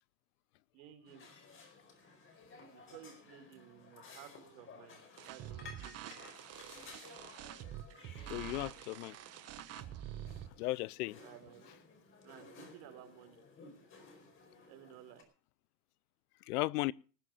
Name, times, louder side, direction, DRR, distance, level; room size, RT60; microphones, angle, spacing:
voice 1, 0.7-1.3 2.7-6.2 11.2-11.7 12.2-13.4 14.7-15.2, right 11 dB, 60° right, 4.2 m, -55 dB
sound 1, 1.1-15.2, left 4 dB, 25° left, 4.7 m, -56 dB
sound 2, 5.2-10.5, right 12 dB, 30° right, 1.3 m, -47 dB
voice 2, 8.3-9.2 10.6-11.2 16.5-16.9, left 20 dB, 65° left, 0.7 m, -35 dB
19.5 x 7.5 x 6.7 m
supercardioid pair, 140°, 49 cm